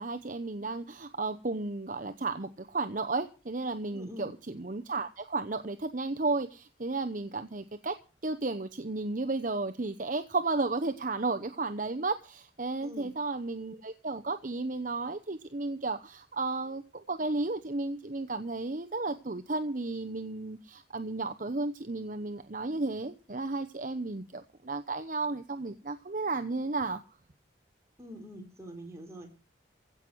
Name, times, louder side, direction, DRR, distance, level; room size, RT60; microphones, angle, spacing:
voice 1, 0.0-7.9 8.2-27.0, right 3 dB, 45° right, 8 dB, 0.8 m, -33 dB
voice 2, 3.9-4.3 12.8-13.1 28.0-29.3, equal, 15° right, 1 dB, 4.3 m, -45 dB
16.0 x 6.2 x 9.6 m, 0.34 s
head